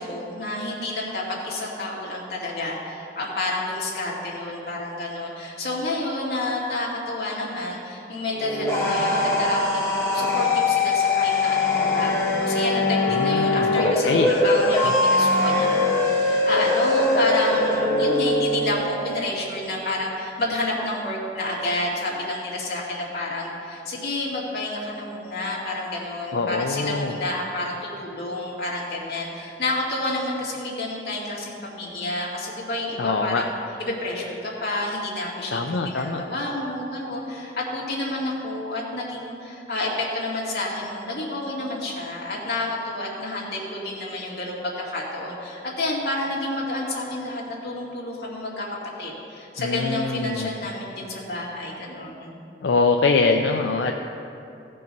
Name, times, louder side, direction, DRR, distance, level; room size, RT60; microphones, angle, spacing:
voice 1, 0.0-33.5 33.8-52.3, left 2 dB, 60° left, -4 dB, 2.2 m, -29 dB
sound 1, 8.3-18.7, left 2 dB, 15° left, 1.6 m, -21 dB
voice 2, 13.1-14.3 14.6-14.9 26.3-27.1 33.0-33.4 35.5-36.2 49.6-50.5 52.6-53.9, left 4 dB, 90° left, 3 dB, 0.5 m, -24 dB
15.5 x 5.4 x 5.4 m, 2.7 s
head